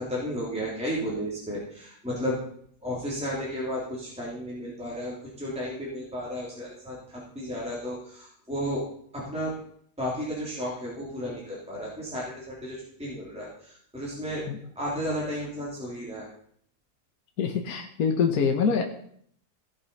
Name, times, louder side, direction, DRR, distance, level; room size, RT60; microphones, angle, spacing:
voice 1, 0.0-2.4 2.8-8.9 9.1-9.5 10.0-14.4 14.7-16.3, equal, 5° right, -7 dB, 3.3 m, -33 dB
voice 2, 17.4-18.8, left 6 dB, 65° left, 3 dB, 1.6 m, -25 dB
17.0 x 6.2 x 5.5 m, 0.64 s
omnidirectional pair, 1.7 m